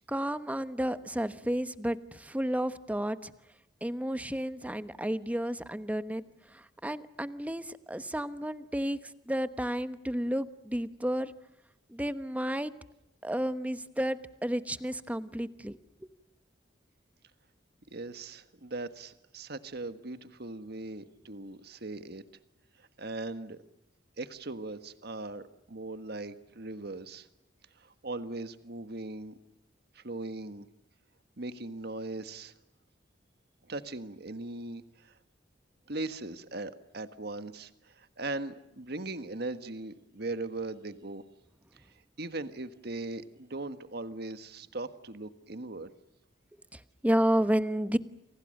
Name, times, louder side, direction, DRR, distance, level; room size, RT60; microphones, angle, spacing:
voice 1, 0.1-3.3 3.8-9.0 9.3-11.3 11.9-12.7 13.2-16.1 46.7-48.0, equal, 10° right, 12 dB, 1.1 m, -31 dB
voice 2, 17.9-22.2 22.8-23.6 24.2-27.3 27.8-29.4 29.9-30.7 31.4-32.5 33.7-35.2 35.9-41.2 41.7-45.9, right 2 dB, 60° right, 11 dB, 1.5 m, -39 dB
30.0 x 25.0 x 6.6 m, 0.90 s
head